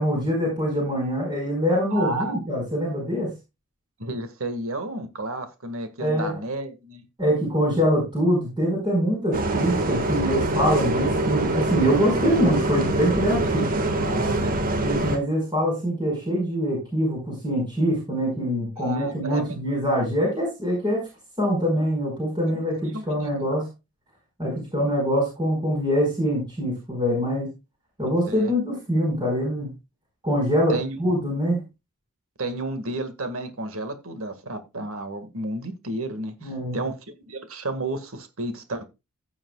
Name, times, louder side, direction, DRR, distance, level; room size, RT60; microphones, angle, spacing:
voice 1, 0.0-3.3 6.0-6.3 7.2-13.7 14.8-21.0 21.4-23.7 24.4-27.5 28.0-29.7 30.2-31.6 36.4-36.8, equal, 20° right, 4.9 m, -24 dB
voice 2, 1.9-2.4 4.0-7.1 13.4-14.6 18.8-19.6 22.5-23.6 28.3-28.5 30.7-31.0 32.4-37.0 37.3-38.8, right 2 dB, 65° right, 1.8 m, -32 dB
Bus, 9.3-15.2, right 2 dB, 40° right, 1.7 m, -24 dB
15.5 x 7.3 x 2.3 m
head